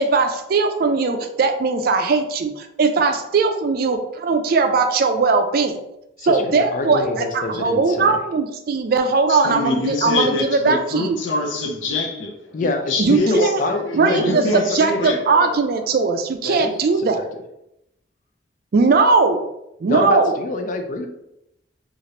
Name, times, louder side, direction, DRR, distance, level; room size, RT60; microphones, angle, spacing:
voice 1, 0.0-5.8 6.3-11.2 13.0-13.6 13.9-14.4 14.7-17.2 18.7-19.5 19.8-20.4, right 4 dB, 50° right, 6 dB, 0.3 m, -19 dB
voice 2, 6.2-8.2 12.5-14.6 15.0-15.1 16.4-16.7 17.0-17.2 19.9-21.1, left 2 dB, 45° left, 5 dB, 0.4 m, -26 dB
voice 3, 9.3-15.6, left 2 dB, 90° left, 1 dB, 0.6 m, -25 dB
2.8 x 2.5 x 3.1 m, 0.84 s
head